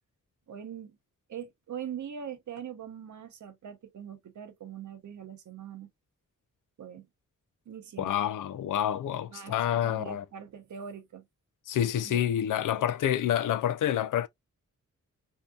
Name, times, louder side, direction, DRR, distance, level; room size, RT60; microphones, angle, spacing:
voice 1, 0.5-1.0 1.3-5.9 6.8-7.1 7.7-8.1 9.3-11.2 12.0-12.2, right 8 dB, 70° right, 0.8 m, -42 dB
voice 2, 8.0-10.2 11.7-14.3, left 10 dB, 85° left, 0.5 m, -28 dB
3.6 x 2.8 x 2.3 m
wide cardioid pair, 125°, 31 cm